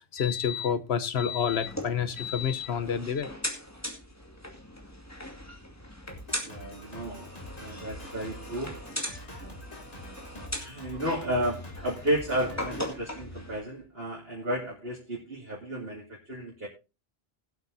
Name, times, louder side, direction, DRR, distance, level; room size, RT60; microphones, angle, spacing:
voice 1, 0.1-3.3, left 7 dB, 85° left, 1.2 m, -28 dB
sound 1, 1.5-13.6, left 1 dB, 15° left, 2.2 m, -40 dB
Drum kit, 6.1-13.9, left 1 dB, 40° left, 2.4 m, -46 dB
voice 2, 6.4-8.8 10.5-16.7, equal, 70° right, 2.9 m, -33 dB
20.5 x 8.2 x 2.7 m
omnidirectional pair, 1.0 m